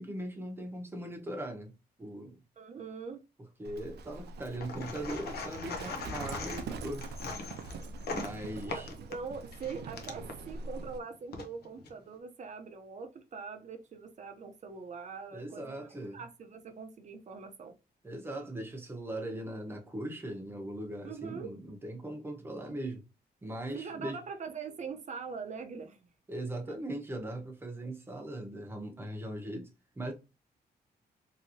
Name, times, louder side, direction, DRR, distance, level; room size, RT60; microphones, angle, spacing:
voice 1, 0.0-1.7 2.0-2.4 3.6-7.1 8.1-8.9 15.3-16.2 18.0-23.0 23.4-24.2 26.3-29.7 30.0-30.1, right 1 dB, 15° right, 1.0 m, -39 dB
voice 2, 2.6-3.2 8.6-15.8 16.1-17.7 21.0-21.5 23.7-26.0 26.7-26.8, right 5 dB, 45° right, 0.8 m, -42 dB
Livestock farm animals working animals, 3.6-11.0, right 3 dB, 80° right, 0.5 m, -43 dB
sound 1, 4.6-10.4 11.1-11.9, left 4 dB, 75° left, 0.9 m, -41 dB
3.2 x 2.9 x 2.8 m
wide cardioid pair, 145°, 17 cm